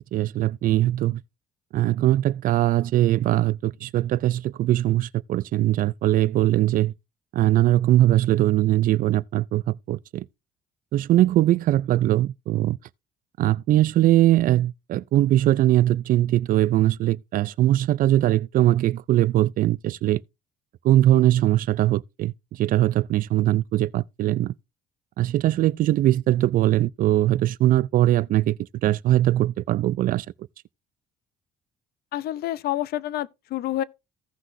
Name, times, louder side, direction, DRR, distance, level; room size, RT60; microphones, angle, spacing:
voice 1, 0.1-1.2 1.7-6.9 7.3-9.6 9.9-10.3 10.9-12.8 13.4-20.2 20.8-24.5 25.2-30.3, right 14 dB, 55° right, 0.4 m, -21 dB
voice 2, 32.1-33.8, left 13 dB, 70° left, 0.6 m, -28 dB
15.5 x 6.1 x 2.6 m
cardioid pair, 110°, 17 cm